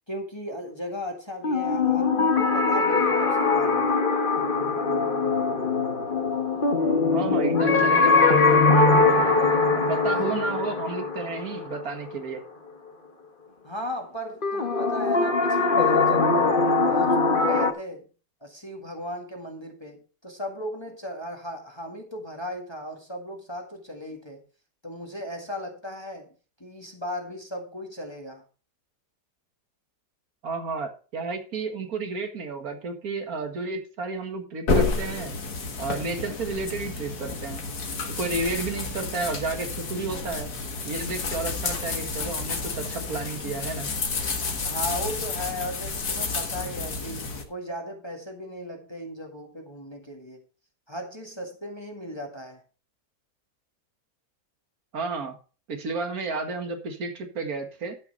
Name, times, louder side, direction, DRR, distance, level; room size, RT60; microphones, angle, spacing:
voice 1, 0.1-4.0 9.7-10.3 13.6-16.3 16.8-18.1 18.4-24.4 24.8-26.3 26.6-28.4 44.6-50.4 50.9-52.6, equal, 15° left, 2 dB, 1.9 m, -36 dB
sound 1, 1.4-12.3 14.4-17.7, left 3 dB, 35° left, 1.4 m, -22 dB
voice 2, 7.1-8.7 9.8-12.4 30.4-35.3 35.8-37.6 38.2-40.5 40.8-43.9 54.9-55.3 55.7-58.0, right 4 dB, 65° right, 6 dB, 2.2 m, -32 dB
sound 2, 34.7-47.4, left 4 dB, 70° left, 2.2 m, -30 dB
12.5 x 5.9 x 5.5 m, 0.36 s
omnidirectional pair, 1.7 m